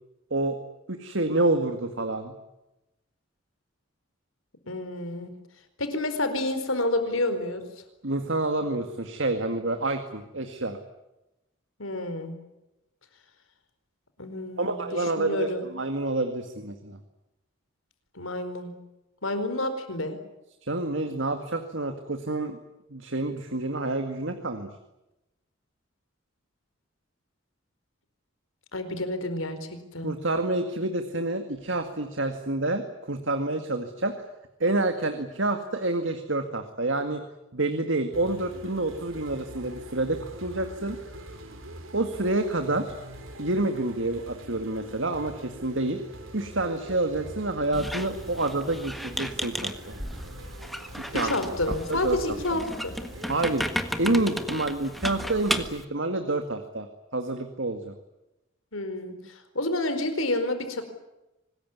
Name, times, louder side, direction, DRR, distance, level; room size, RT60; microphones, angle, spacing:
voice 1, 0.9-2.3 8.0-10.8 14.6-17.0 20.7-22.6 22.9-24.7 30.0-34.3 34.6-37.2 37.5-41.0 41.9-42.9 43.4-46.0 46.3-50.0 51.0-52.2 52.5-52.6 53.3-53.7 54.0-56.9 57.1-57.9, right 2 dB, 70° right, 7 dB, 2.1 m, -28 dB
voice 2, 4.7-5.3 5.8-7.6 11.8-12.4 14.2-15.7 18.1-18.7 19.2-20.2 28.7-30.1 51.1-52.9 58.7-60.8, left 2 dB, 90° left, 9 dB, 4.7 m, -29 dB
sound 1, 38.1-54.1, right 1 dB, 85° right, 4.8 m, -44 dB
Squeak, 47.7-55.8, equal, ahead, 1.6 m, -34 dB
25.5 x 20.5 x 9.7 m, 0.95 s
head